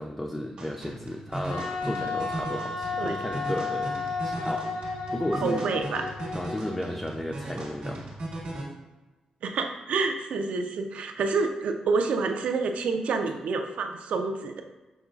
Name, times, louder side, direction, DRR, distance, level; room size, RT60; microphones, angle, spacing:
voice 1, 0.0-3.9 4.2-4.7 5.1-5.7 6.3-8.1, left 1 dB, 5° left, 2 dB, 0.3 m, -33 dB
sound 1, 0.6-8.6, right 1 dB, 60° right, 1.3 m, -38 dB
Wind instrument woodwind instrument, 1.5-7.0, left 4 dB, 75° left, 0.7 m, -33 dB
voice 2, 5.4-6.1 9.4-14.6, right 4 dB, 75° right, 5 dB, 0.5 m, -28 dB
5.4 x 3.8 x 2.3 m, 1.1 s
cardioid pair, 120°, 2 cm